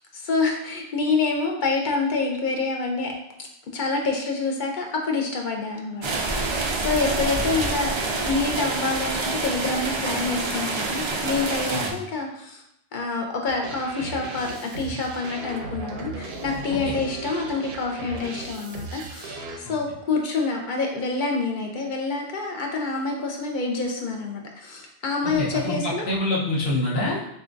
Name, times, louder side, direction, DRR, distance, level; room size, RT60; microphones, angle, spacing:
voice 1, 0.1-3.1 3.7-12.6 12.9-26.1, left 3 dB, 55° left, 1 dB, 0.7 m, -27 dB
sound 1, 6.0-11.9, right 3 dB, 50° right, 0.3 m, -27 dB
voice 2, 7.0-7.5 11.7-11.9 16.8-17.0 19.6-19.7 25.2-25.8 26.1-27.2, left 2 dB, 70° left, -5 dB, 1.2 m, -27 dB
sound 2, 13.5-19.6, right 3 dB, 75° right, 0.9 m, -36 dB
6.6 x 2.3 x 2.6 m, 0.78 s
omnidirectional pair, 1.1 m